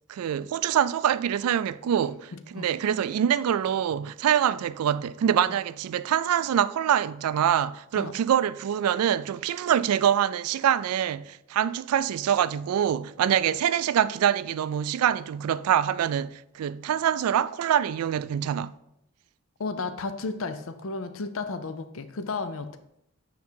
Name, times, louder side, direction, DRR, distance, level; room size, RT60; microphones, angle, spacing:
voice 1, 0.1-18.7, right 9 dB, 85° right, 0.3 m, -25 dB
voice 2, 19.6-22.8, left 3 dB, 65° left, 0.5 m, -33 dB
9.3 x 3.7 x 4.4 m
head